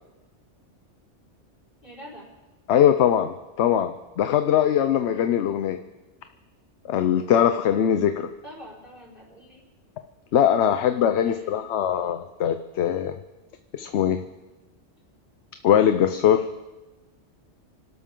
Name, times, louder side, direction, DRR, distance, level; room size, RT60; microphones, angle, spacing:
voice 1, 1.8-2.3 8.4-9.7 11.2-11.7, equal, 45° left, -6 dB, 4.8 m, -45 dB
voice 2, 2.7-5.8 6.8-8.3 10.3-13.1 13.7-14.2 15.6-16.5, left 9 dB, 70° left, 8 dB, 0.9 m, -21 dB
25.5 x 12.5 x 3.8 m, 1.1 s
omnidirectional pair, 1.2 m